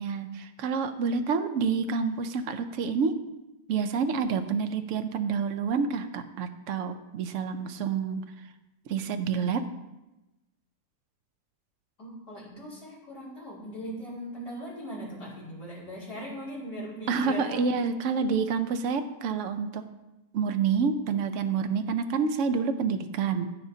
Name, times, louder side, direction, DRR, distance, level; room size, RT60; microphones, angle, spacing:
voice 1, 0.0-3.2 3.7-8.2 8.9-9.6 17.1-19.8 20.3-23.5, right 5 dB, 60° right, 8 dB, 0.9 m, -28 dB
voice 2, 12.0-17.7, equal, 50° left, -7 dB, 4.4 m, -39 dB
15.5 x 6.8 x 2.8 m, 1.0 s
omnidirectional pair, 1.7 m